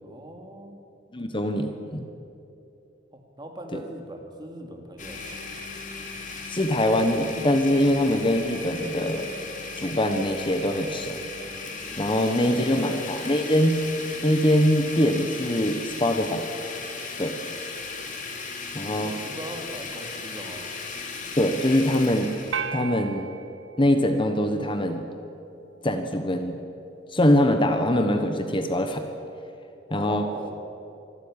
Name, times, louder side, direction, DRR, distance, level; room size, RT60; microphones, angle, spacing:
voice 1, 0.0-0.8 3.1-5.4 12.0-12.9 18.9-20.7 29.9-30.6, right 1 dB, 25° right, 3 dB, 2.7 m, -40 dB
voice 2, 1.1-2.1 3.7-3.8 6.5-9.2 9.8-11.2 12.0-13.8 14.2-16.4 17.2-17.3 18.7-19.1 21.4-22.3 22.7-23.3 23.8-25.0 25.8-26.6 27.1-29.0 29.9-30.3, left 1 dB, 25° left, 7 dB, 1.3 m, -23 dB
Domestic sounds home sounds, 5.0-22.6, left 4 dB, 45° left, 2.8 m, -36 dB
sound 1, 22.5-25.0, right 6 dB, 80° right, 0.8 m, -36 dB
25.5 x 14.0 x 9.9 m, 2.8 s
head